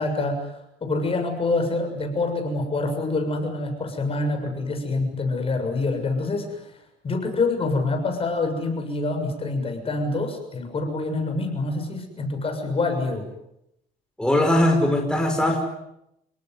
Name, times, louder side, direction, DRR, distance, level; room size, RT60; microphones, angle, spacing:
voice 1, 0.0-6.6 7.0-13.3, left 3 dB, 35° left, 5 dB, 6.9 m, -26 dB
voice 2, 14.2-15.7, left 1 dB, 5° left, 2 dB, 5.0 m, -20 dB
29.5 x 18.5 x 9.6 m, 0.82 s
cardioid pair, 110°, 17 cm